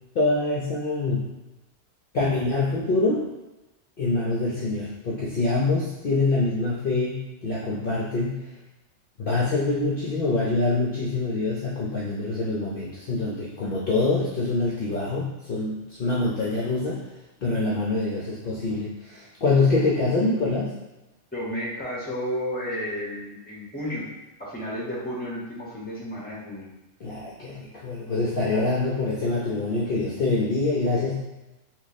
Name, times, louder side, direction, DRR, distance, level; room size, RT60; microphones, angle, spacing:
voice 1, 0.1-1.3 2.1-3.3 4.0-8.5 9.2-17.0 17.4-20.8 27.0-31.1, left 3 dB, 55° left, -5 dB, 0.7 m, -25 dB
voice 2, 21.3-24.1 24.4-26.7, equal, 10° left, -6 dB, 0.8 m, -32 dB
3.0 x 2.3 x 4.0 m, 1.0 s
omnidirectional pair, 1.3 m